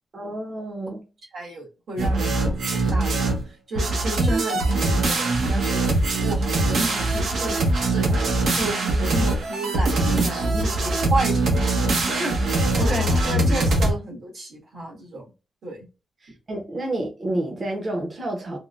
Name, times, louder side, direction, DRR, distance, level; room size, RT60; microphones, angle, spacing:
voice 1, 0.1-1.0 4.5-5.1 12.8-13.5 16.2-18.6, right 1 dB, 35° right, 0.9 m, -30 dB
voice 2, 1.3-4.8 5.4-8.1 8.6-11.7 12.0-12.4 12.8-15.2 15.6-15.9, right 2 dB, 65° right, 1.7 m, -32 dB
sound 1, 2.0-3.4 3.8-13.9, right 2 dB, 85° right, 1.0 m, -22 dB
3.6 x 2.2 x 2.5 m
wide cardioid pair, 175°, 0 cm